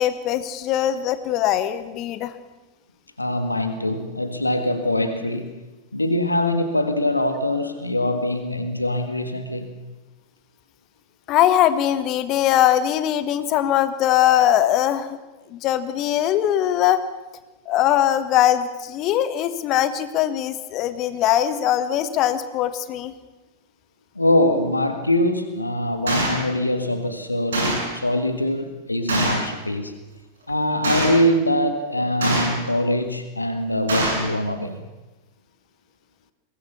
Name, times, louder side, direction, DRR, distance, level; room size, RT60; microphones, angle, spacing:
voice 1, 0.0-2.3 11.3-15.2 15.5-17.0 17.6-23.1, left 11 dB, 40° left, 13 dB, 1.4 m, -21 dB
voice 2, 3.2-5.6 5.9-9.7 24.1-29.9 30.5-34.8, left 1 dB, 85° left, 8 dB, 1.7 m, -23 dB
Gunshot gunfire, 26.1-26.4 27.5-27.9 29.1-29.5 30.8-31.2 32.2-32.7 33.9-34.3, right 2 dB, 70° right, 7.7 m, -23 dB
22.5 x 18.5 x 7.1 m, 1.1 s
figure-of-eight pair, 90°, 0 cm